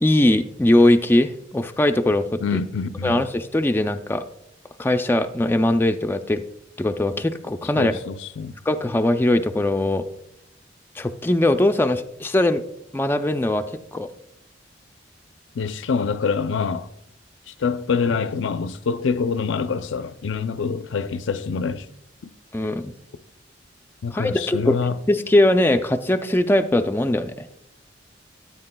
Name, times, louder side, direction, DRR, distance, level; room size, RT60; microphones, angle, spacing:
voice 1, 0.0-2.4 3.0-4.2 4.8-6.4 6.8-7.9 8.7-10.0 11.0-12.6 12.9-13.6 13.9-14.1 22.5-22.9 24.1-24.8 25.1-27.5, left 1 dB, 10° left, 0.3 m, -20 dB
voice 2, 2.4-3.3 7.8-8.5 15.5-16.9 17.5-21.9 22.2-22.3 24.0-25.0, left 5 dB, 85° left, 0.5 m, -25 dB
13.5 x 8.4 x 2.2 m
head